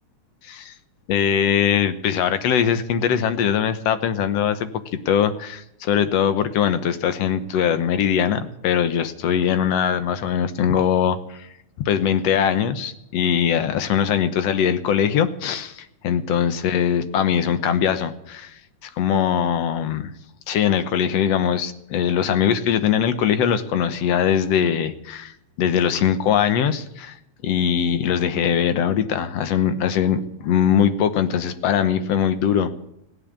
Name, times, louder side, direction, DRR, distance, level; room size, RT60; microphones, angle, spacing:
voice 1, 0.4-0.7 1.1-11.5 11.9-20.1 20.5-27.2 27.4-32.7, left 8 dB, 65° left, 11 dB, 1.9 m, -21 dB
16.0 x 9.8 x 8.7 m, 0.82 s
omnidirectional pair, 3.5 m